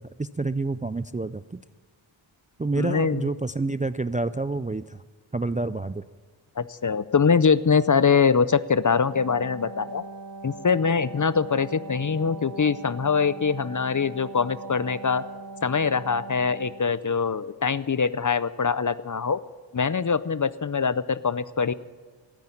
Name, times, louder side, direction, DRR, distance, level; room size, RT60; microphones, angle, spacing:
voice 1, 0.0-1.6 2.6-5.0 5.3-6.0, right 3 dB, 20° right, 15 dB, 0.3 m, -28 dB
voice 2, 2.8-3.3 6.6-10.0 10.4-15.2 15.6-19.4 19.7-21.7, left 5 dB, 40° left, 16 dB, 0.5 m, -23 dB
Wind instrument woodwind instrument, 9.0-17.0, right 3 dB, 35° right, 0.9 m, -41 dB
13.5 x 9.6 x 9.0 m, 1.5 s
wide cardioid pair, 45°, 49 cm